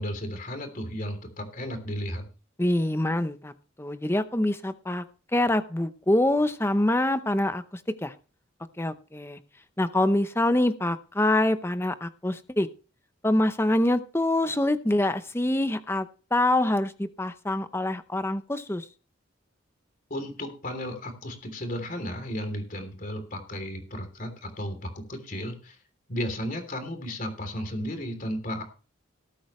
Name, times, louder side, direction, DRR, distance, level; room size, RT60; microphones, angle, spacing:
voice 1, 0.0-2.3 20.1-25.8 26.1-28.6, equal, 40° left, 6 dB, 3.2 m, -34 dB
voice 2, 2.6-3.5 3.8-5.0 5.3-8.1 8.8-9.4 9.8-12.7 13.2-18.9, left 1 dB, 10° left, 11 dB, 0.7 m, -25 dB
18.5 x 8.7 x 3.2 m, 0.35 s
head